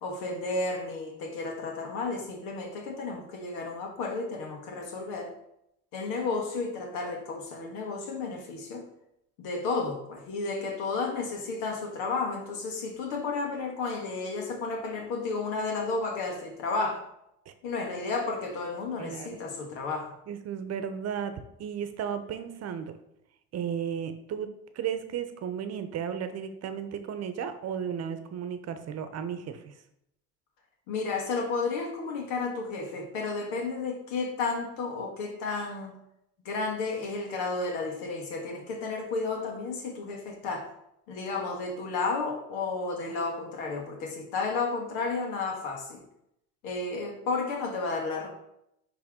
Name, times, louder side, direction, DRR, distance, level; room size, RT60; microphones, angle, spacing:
voice 1, 0.0-5.3 5.9-8.9 9.4-17.0 17.6-20.1 30.9-36.0 36.4-40.7 41.1-46.0 46.6-48.3, left 3 dB, 80° left, 1 dB, 1.7 m, -32 dB
voice 2, 19.0-19.3 20.3-22.9 23.5-29.7, right 8 dB, 50° right, 9 dB, 0.9 m, -34 dB
10.0 x 3.4 x 3.7 m, 0.80 s
supercardioid pair, 80°, 33 cm